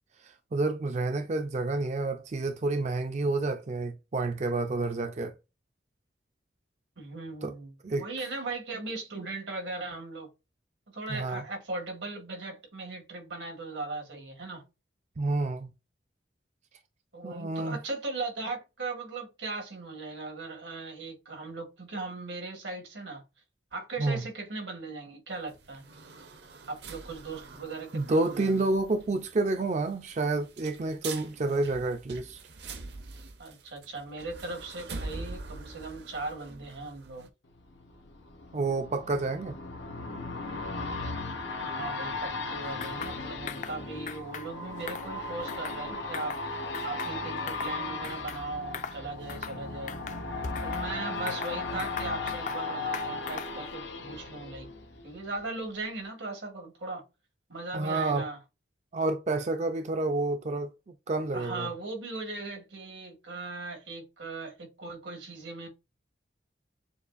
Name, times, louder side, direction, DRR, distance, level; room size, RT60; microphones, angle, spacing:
voice 1, 0.2-5.3 7.4-7.5 7.8-8.1 11.1-11.4 15.2-15.7 17.2-17.8 24.0-24.2 27.9-32.4 38.5-39.5 57.7-58.3 58.9-61.7, right 2 dB, 40° right, 0.4 m, -29 dB
voice 2, 7.0-10.3 10.9-14.6 17.1-23.2 23.7-25.8 26.7-28.6 33.4-37.3 41.6-46.4 46.8-50.0 50.6-54.7 55.0-57.0 57.5-58.4 61.3-65.7, right 3 dB, 90° right, 2.0 m, -38 dB
sound 1, 25.3-37.3, right 3 dB, 65° right, 0.8 m, -45 dB
sound 2, 37.6-55.4 55.8-55.9, left 3 dB, 85° left, 0.9 m, -36 dB
sound 3, 42.8-43.2 43.5-43.8 44.1-44.5 44.8-45.8 46.1-46.4 46.7-47.7 48.0-48.4 48.7-49.0 49.3-49.6 49.9-50.9 51.3-52.6 52.9-53.6, left 6 dB, 40° left, 0.4 m, -40 dB
6.8 x 2.4 x 2.5 m
head